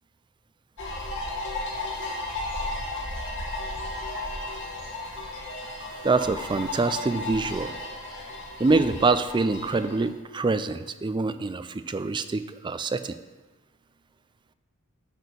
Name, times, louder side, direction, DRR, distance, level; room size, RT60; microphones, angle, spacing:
sound 1, 0.8-10.1, left 2 dB, 60° left, 2.0 m, -34 dB
voice 1, 6.0-7.8 8.6-13.2, right 3 dB, 20° right, 12 dB, 0.4 m, -25 dB
10.5 x 4.3 x 6.9 m, 1.2 s
head